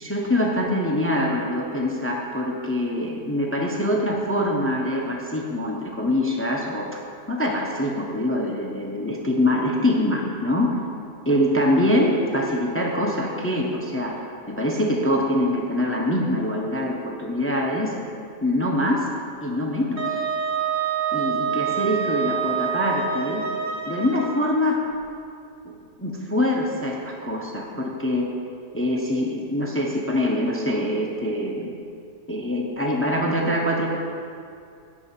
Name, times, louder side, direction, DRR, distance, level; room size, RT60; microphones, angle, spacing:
voice 1, 0.0-7.0 7.3-10.8 11.2-14.2 14.5-18.0 18.4-19.1 19.4-20.2 21.1-23.5 23.9-24.8 26.0-28.3 28.7-31.7 32.3-33.9, left 1 dB, 10° left, 0 dB, 0.7 m, -24 dB
Wind instrument woodwind instrument, 20.0-24.7, right 7 dB, 60° right, 1.3 m, -27 dB
11.5 x 4.8 x 8.2 m, 2.5 s
omnidirectional pair, 1.7 m